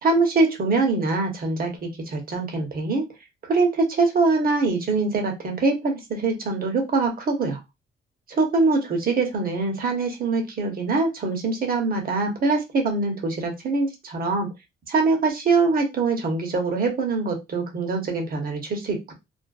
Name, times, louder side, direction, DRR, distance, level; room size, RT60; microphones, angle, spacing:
voice 1, 0.0-3.0 3.5-7.6 8.3-14.5 14.9-19.1, right 3 dB, 45° right, 3 dB, 0.9 m, -23 dB
2.5 x 2.2 x 2.3 m, 0.22 s
cardioid pair, 90°, 20 cm